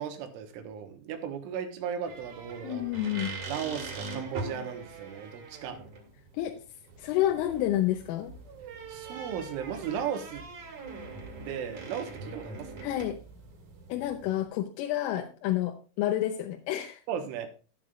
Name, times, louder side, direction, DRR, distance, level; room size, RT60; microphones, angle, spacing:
voice 1, 0.0-2.9 3.5-5.8 8.9-10.4 11.4-12.9 17.1-17.5, right 8 dB, 80° right, 7 dB, 3.6 m, -36 dB
sound 1, 2.0-14.4, right 3 dB, 45° right, 2.9 m, -42 dB
voice 2, 2.6-3.3 6.3-6.6 7.0-8.4 12.8-13.2 13.9-17.0, left 13 dB, 85° left, 4 dB, 3.4 m, -29 dB
11.5 x 11.5 x 2.4 m, 0.35 s
omnidirectional pair, 5.7 m